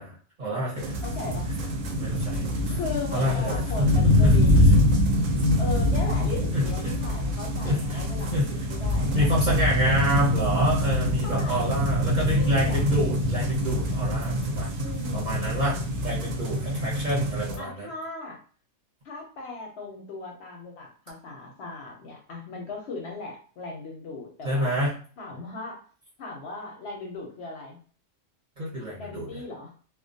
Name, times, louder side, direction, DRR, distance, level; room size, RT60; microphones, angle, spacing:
voice 1, 0.0-1.0 2.0-2.8 3.1-3.6 4.2-4.3 5.3-5.4 6.5-6.6 7.6-8.0 8.3-8.5 9.1-14.7 15.1-15.8 16.0-17.9 24.4-24.9 28.6-29.4, equal, 40° right, -6 dB, 0.8 m, -27 dB
sound 1, 0.8-17.6, left 1 dB, 75° right, 0.9 m, -24 dB
voice 2, 1.0-1.5 2.7-5.0 5.6-9.3 9.6-10.0 11.2-11.8 12.4-12.8 14.8-15.4 17.6-18.4 19.0-24.8 25.2-25.8 26.2-27.8 29.0-29.7, left 3 dB, 65° left, 0 dB, 0.7 m, -37 dB
2.3 x 2.1 x 2.6 m, 0.42 s
omnidirectional pair, 1.4 m